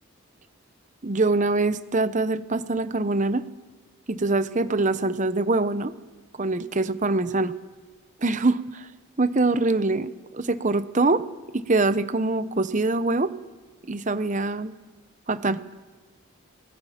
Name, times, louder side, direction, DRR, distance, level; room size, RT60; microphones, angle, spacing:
voice 1, 1.0-3.4 4.1-5.9 6.4-7.5 8.2-8.9 9.2-11.2 11.5-13.3 13.8-14.7 15.3-15.6, right 3 dB, 35° right, 13 dB, 0.8 m, -24 dB
23.5 x 20.5 x 5.8 m, 1.3 s
head